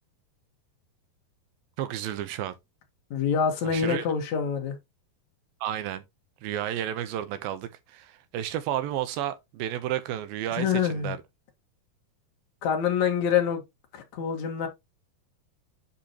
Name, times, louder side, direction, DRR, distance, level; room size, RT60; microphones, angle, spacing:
voice 1, 1.8-2.6 3.6-4.1 5.6-6.0 6.4-11.2, right 11 dB, 80° right, 2.5 m, -32 dB
voice 2, 3.1-4.8 10.6-11.2 12.6-13.6 13.9-14.7, left 7 dB, 55° left, 2.5 m, -26 dB
10.0 x 4.9 x 2.9 m
omnidirectional pair, 4.3 m